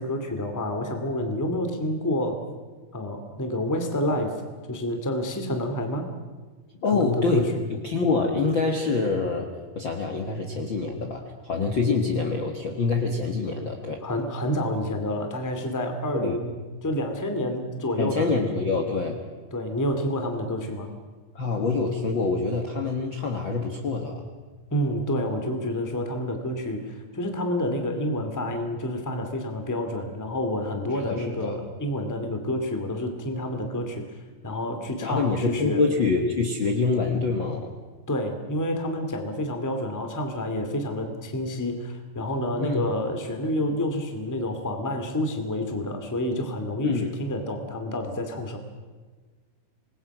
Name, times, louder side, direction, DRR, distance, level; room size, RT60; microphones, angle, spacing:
voice 1, 0.0-2.4 2.9-4.3 4.7-6.1 6.9-7.5 14.0-16.5 16.8-18.4 19.5-20.9 24.7-34.0 34.4-35.8 38.1-48.6, left 1 dB, 5° left, 5 dB, 1.7 m, -28 dB
voice 2, 6.8-7.5 7.8-14.0 16.1-16.4 18.0-19.2 21.3-24.2 31.0-31.5 35.0-37.7 42.6-42.8 46.8-47.1, left 4 dB, 45° left, 2 dB, 1.7 m, -25 dB
27.0 x 20.5 x 6.1 m, 1.4 s
omnidirectional pair, 4.2 m